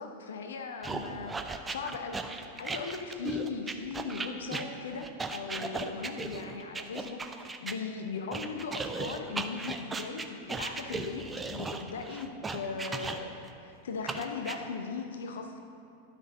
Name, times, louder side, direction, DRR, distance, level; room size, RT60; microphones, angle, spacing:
voice 1, 0.0-15.6, left 4 dB, 60° left, 5 dB, 0.7 m, -38 dB
sound 1, 0.8-7.8 8.3-13.5 14.1-14.6, right 3 dB, 15° right, 0.5 m, -37 dB
12.0 x 6.2 x 5.2 m, 2.6 s
figure-of-eight pair, 90°, 0 cm